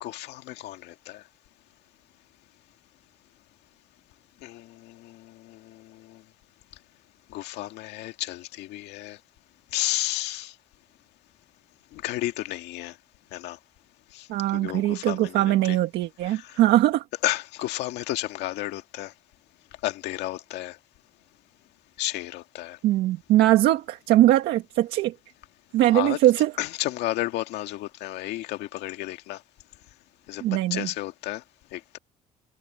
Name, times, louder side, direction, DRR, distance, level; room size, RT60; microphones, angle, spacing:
voice 1, 0.0-1.2 4.4-6.2 7.3-9.2 9.7-10.5 11.9-12.9 13.3-13.6 14.1-14.3 14.5-15.8 16.2-16.6 17.2-19.1 19.8-20.8 22.0-22.8 25.8-26.2 26.6-29.4 30.3-31.4 31.7-32.0, left 16 dB, 85° left, 2.0 m, -32 dB
voice 2, 14.3-17.0 22.8-25.1 25.7-26.5 30.4-30.9, right 14 dB, 80° right, 1.7 m, -21 dB
cardioid pair, 110°, 17 cm